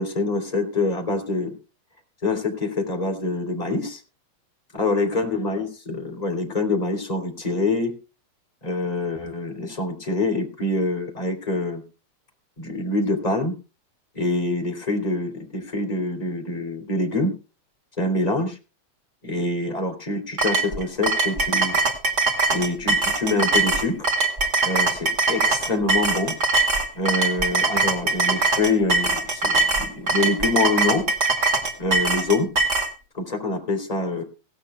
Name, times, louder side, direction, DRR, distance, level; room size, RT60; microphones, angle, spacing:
voice 1, 0.0-1.5 2.2-4.0 4.7-7.9 8.6-11.8 12.6-13.5 14.1-17.3 18.0-18.6 19.2-21.8 22.5-24.1 24.6-26.4 26.9-31.1 31.8-32.5 33.1-34.2, left 2 dB, 10° left, 4 dB, 2.4 m, -25 dB
sound 1, 20.4-32.9, right 3 dB, 50° right, 0.8 m, -22 dB
17.5 x 15.5 x 2.2 m, 0.32 s
omnidirectional pair, 5.6 m